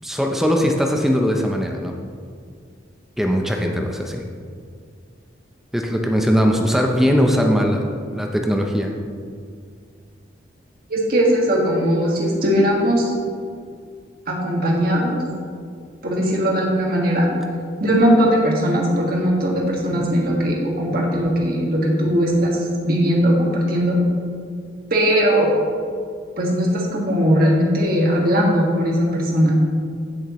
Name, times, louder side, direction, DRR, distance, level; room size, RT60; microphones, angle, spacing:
voice 1, 0.0-1.9 3.2-4.2 5.7-8.9, equal, ahead, 1 dB, 0.6 m, -20 dB
voice 2, 10.9-13.1 14.3-15.2 16.0-17.3 17.8-22.6 22.8-24.0 24.9-25.5 26.4-29.5, equal, 50° right, -2 dB, 1.9 m, -19 dB
15.0 x 6.5 x 3.1 m, 2.2 s
head